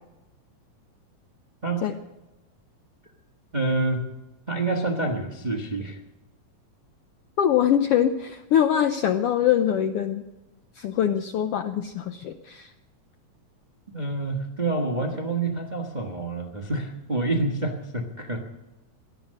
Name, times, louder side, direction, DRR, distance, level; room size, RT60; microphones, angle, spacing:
voice 1, 3.5-4.1 4.5-6.0 13.9-18.4, right 2 dB, 60° right, 1 dB, 0.4 m, -27 dB
voice 2, 7.4-10.2 10.8-12.7, left 10 dB, 85° left, 8 dB, 1.3 m, -23 dB
17.5 x 12.0 x 6.5 m, 1.0 s
omnidirectional pair, 3.4 m